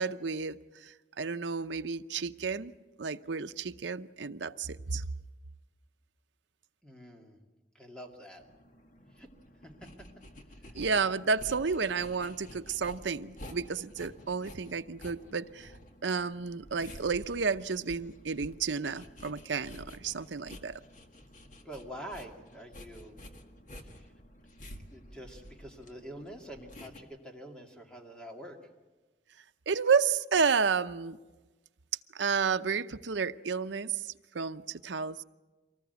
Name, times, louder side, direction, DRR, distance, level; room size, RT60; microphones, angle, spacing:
voice 1, 0.0-2.7 3.0-5.0 10.7-15.7 16.0-20.8 29.7-31.2 32.1-35.2, right 5 dB, 80° right, 10 dB, 0.7 m, -31 dB
voice 2, 6.8-7.4 7.7-8.4 9.1-9.3 9.6-10.1 10.6-10.8 21.6-23.3 23.8-24.1 24.7-28.6, equal, 5° left, 2 dB, 2.4 m, -46 dB
sound 1, 8.4-27.0, equal, 45° left, 1.9 m, -51 dB
24.5 x 19.5 x 8.1 m, 1.2 s
head